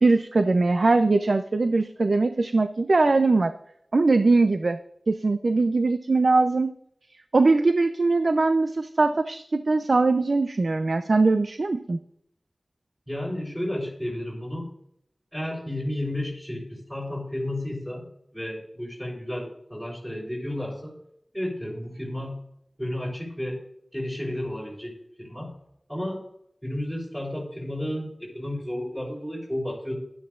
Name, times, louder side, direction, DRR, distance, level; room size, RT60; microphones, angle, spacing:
voice 1, 0.0-3.5 3.9-4.8 5.1-6.7 7.3-12.0, right 3 dB, 70° right, 9 dB, 0.5 m, -21 dB
voice 2, 13.1-14.7 15.3-20.9 21.3-22.4 22.8-23.6 23.9-25.5 25.9-26.2 26.6-29.9, left 1 dB, 5° right, -5 dB, 3.9 m, -32 dB
12.5 x 11.0 x 2.5 m, 0.73 s
cardioid pair, 40°, 0 cm